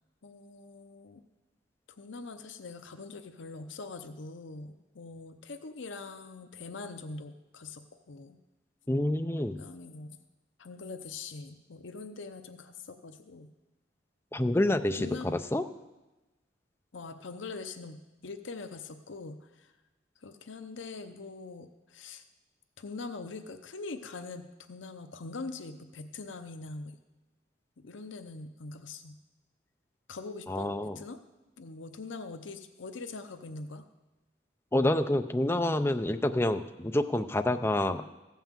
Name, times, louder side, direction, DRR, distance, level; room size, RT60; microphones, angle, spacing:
voice 1, 0.2-1.2 2.0-8.4 9.6-10.2 10.6-13.5 14.9-15.4 16.9-19.7 20.2-22.2 22.8-27.0 27.8-29.2 30.1-30.7 31.0-31.2 31.6-33.8, left 3 dB, 75° left, 8 dB, 0.7 m, -43 dB
voice 2, 8.9-9.6 14.3-15.6 30.5-31.0 34.7-38.0, left 1 dB, 10° left, 7 dB, 0.4 m, -28 dB
15.0 x 5.7 x 7.3 m, 1.1 s
head